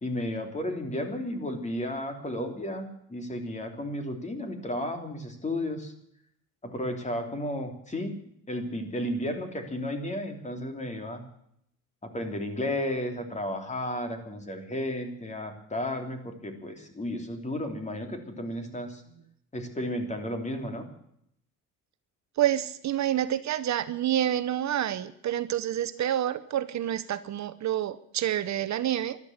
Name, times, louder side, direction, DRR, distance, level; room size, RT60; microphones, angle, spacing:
voice 1, 0.0-5.9 6.6-8.2 8.5-11.3 12.0-19.0 19.5-20.9, left 1 dB, 20° left, 5 dB, 3.3 m, -33 dB
voice 2, 22.4-29.2, right 11 dB, 55° right, 13 dB, 0.9 m, -28 dB
13.5 x 12.5 x 8.0 m, 0.72 s
cardioid pair, 110°, 33 cm